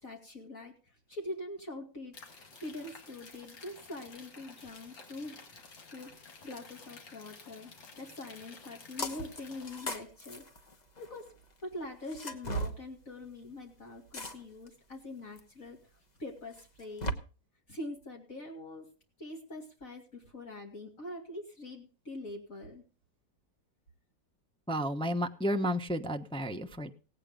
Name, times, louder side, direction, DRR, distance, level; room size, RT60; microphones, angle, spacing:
voice 1, 0.0-5.6 5.9-10.4 11.0-11.3 11.6-15.8 16.2-17.2 17.7-18.9 19.2-22.8, left 1 dB, 45° left, 0 dB, 2.7 m, -44 dB
sound 1, 2.1-9.8, left 4 dB, 80° left, 2.8 m, -52 dB
sound 2, 9.0-9.4 9.7-11.2 12.1-12.8 14.1-14.7 15.4-15.5 16.6-17.1, right 1 dB, 30° left, 1.0 m, -36 dB
voice 2, 24.7-26.9, equal, 5° left, 4 dB, 0.5 m, -32 dB
17.5 x 8.9 x 5.2 m, 0.36 s
omnidirectional pair, 1.9 m